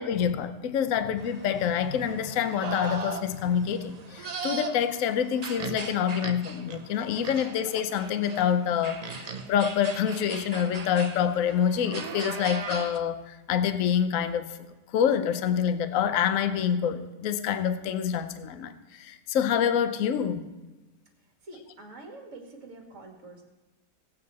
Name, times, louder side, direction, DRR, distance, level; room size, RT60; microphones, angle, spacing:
voice 1, 0.0-14.5 14.9-20.5, left 8 dB, 60° left, 10 dB, 1.0 m, -27 dB
sound 1, 1.2-13.0, right 5 dB, 70° right, 0.3 m, -39 dB
voice 2, 21.4-23.4, right 2 dB, 50° right, 1 dB, 2.1 m, -46 dB
17.0 x 8.5 x 4.1 m, 1.1 s
omnidirectional pair, 1.8 m